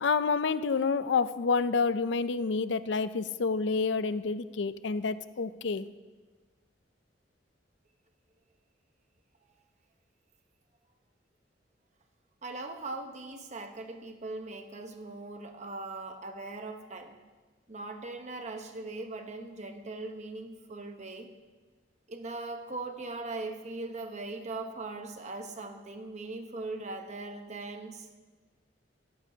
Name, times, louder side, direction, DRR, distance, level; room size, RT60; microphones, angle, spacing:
voice 1, 0.0-5.9, left 4 dB, 70° left, 14 dB, 0.5 m, -28 dB
voice 2, 12.4-17.2 17.7-21.3 22.1-28.1, right 2 dB, 40° right, 6 dB, 1.0 m, -40 dB
17.0 x 13.5 x 2.8 m, 1.3 s
head